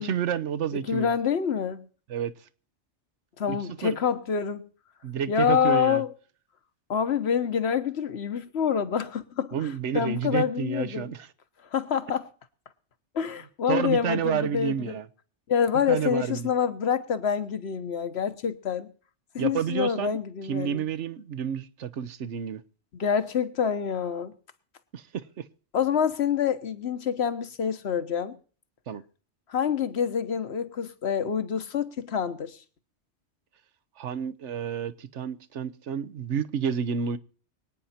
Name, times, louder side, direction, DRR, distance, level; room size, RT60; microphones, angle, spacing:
voice 1, 0.0-1.1 2.1-2.3 3.5-3.6 3.8-4.0 5.0-6.0 9.5-11.3 13.7-15.1 15.9-16.5 19.4-20.2 20.5-22.6 24.9-25.4 28.9-29.0 34.0-37.2, right 8 dB, 75° right, 1.2 m, -30 dB
voice 2, 0.9-1.9 3.4-4.7 5.3-6.1 6.9-11.1 11.7-12.3 13.1-15.0 15.5-18.9 19.3-20.8 23.0-24.3 25.7-28.4 29.5-32.6, left 7 dB, 65° left, 1.3 m, -27 dB
24.0 x 9.3 x 4.3 m
omnidirectional pair, 1.2 m